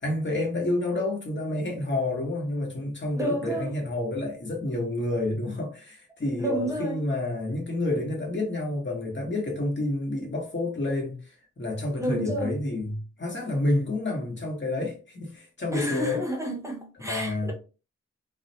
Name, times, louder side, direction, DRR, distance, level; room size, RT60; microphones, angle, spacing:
voice 1, 0.0-16.2 17.0-17.5, left 2 dB, 40° left, 1.1 m, -29 dB
voice 2, 3.1-3.8 6.4-7.0 12.0-12.5 15.7-17.5, right 1 dB, 10° right, 0.8 m, -30 dB
2.4 x 2.1 x 2.7 m
cardioid pair, 50°, 30 cm